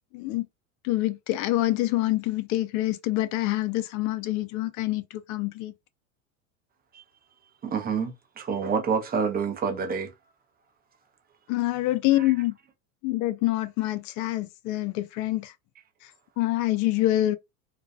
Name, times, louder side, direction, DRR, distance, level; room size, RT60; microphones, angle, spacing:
voice 1, 0.1-0.5 0.8-5.7 11.5-12.5 13.0-15.5 16.0-16.1 16.4-17.4, left 16 dB, 45° left, 0.4 m, -26 dB
voice 2, 7.6-10.1 12.2-12.3, right 6 dB, 20° right, 0.6 m, -28 dB
2.4 x 2.2 x 2.5 m
hypercardioid pair, 90°, 43 cm